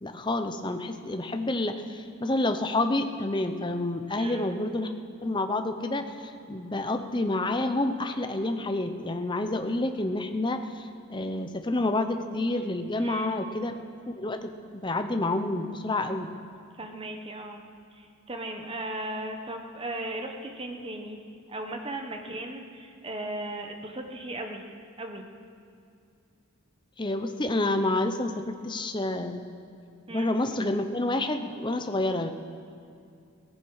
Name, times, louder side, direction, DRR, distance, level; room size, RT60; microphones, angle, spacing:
voice 1, 0.0-4.9 5.2-13.8 14.2-14.5 14.8-16.3 27.0-29.5 30.1-32.3, left 2 dB, 20° left, 7 dB, 0.8 m, -29 dB
voice 2, 4.2-4.5 13.0-13.3 16.8-17.6 17.9-21.2 21.5-24.6 25.0-25.3 30.1-30.3, right 1 dB, 25° right, 4 dB, 1.2 m, -37 dB
18.0 x 16.0 x 4.9 m, 2.4 s
head